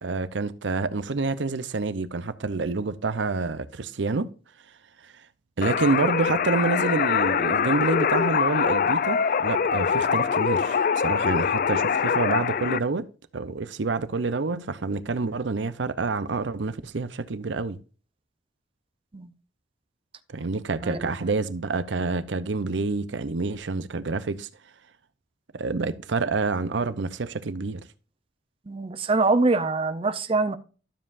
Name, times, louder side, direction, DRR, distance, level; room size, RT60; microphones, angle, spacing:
voice 1, 0.0-4.3 5.0-5.1 5.6-13.0 13.3-17.8 20.3-24.5 25.5-27.8, right 3 dB, 80° right, 0.6 m, -28 dB
sound 1, 5.6-12.8, left 6 dB, 50° left, 0.4 m, -24 dB
voice 2, 20.8-21.3 28.7-30.6, right 3 dB, 30° right, 0.6 m, -24 dB
12.0 x 7.3 x 2.5 m
head